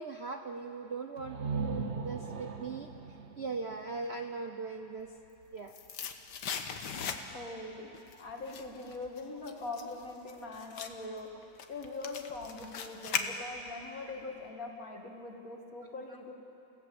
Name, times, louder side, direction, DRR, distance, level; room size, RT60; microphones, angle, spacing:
voice 1, 0.0-5.1 5.5-5.7, right 4 dB, 65° right, 5 dB, 0.6 m, -40 dB
sound 1, 1.2-4.9, right 4 dB, 45° right, 1.0 m, -39 dB
sound 2, 5.2-7.6 7.9-13.8 14.1-14.2, left 6 dB, 60° left, 1.6 m, -39 dB
voice 2, 7.3-7.9 8.2-16.3, left 3 dB, 45° left, 1 dB, 2.4 m, -42 dB
29.5 x 16.5 x 7.8 m, 3.0 s
omnidirectional pair, 2.3 m